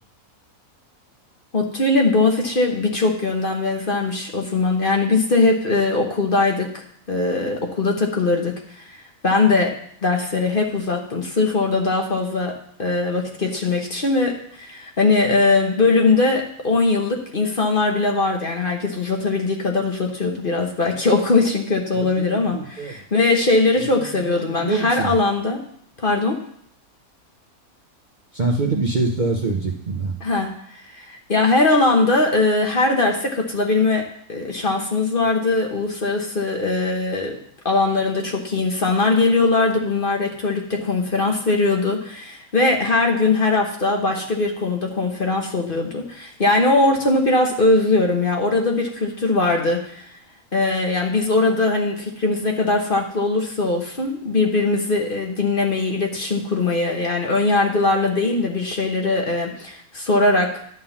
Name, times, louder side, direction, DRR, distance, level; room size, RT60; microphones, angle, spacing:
voice 1, 1.5-9.0 9.2-9.7 10.0-12.5 12.8-25.6 26.0-26.4 30.2-30.5 31.0-34.0 34.3-37.4 37.6-50.1 50.5-60.5, left 3 dB, 40° left, 1 dB, 1.3 m, -20 dB
voice 2, 21.9-22.9 23.8-23.9 24.2-25.1 28.3-30.2, right 3 dB, 40° right, 0 dB, 0.8 m, -25 dB
11.0 x 3.8 x 7.1 m, 0.65 s
omnidirectional pair, 1.5 m